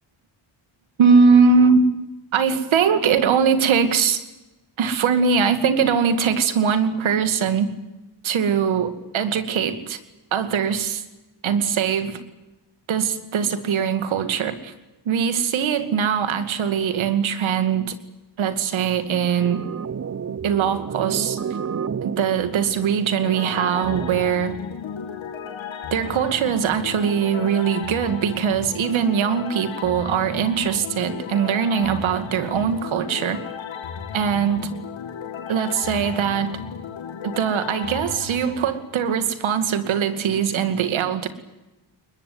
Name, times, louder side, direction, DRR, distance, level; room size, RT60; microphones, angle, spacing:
voice 1, 1.0-1.9 2.3-4.2 4.8-7.7 8.2-10.0 10.3-11.0 11.4-12.2 12.9-14.7 15.1-18.0 18.4-19.6 20.4-21.4 22.0-24.6 25.9-33.4 34.1-34.7 35.5-36.6 37.2-41.3, right 6 dB, 85° right, 10 dB, 2.4 m, -21 dB
sound 1, 19.4-24.4, right 7 dB, 35° right, 0.9 m, -31 dB
sound 2, 23.2-39.3, left 7 dB, 80° left, 2.4 m, -35 dB
22.0 x 21.5 x 9.6 m, 1.1 s
cardioid pair, 80°, 46 cm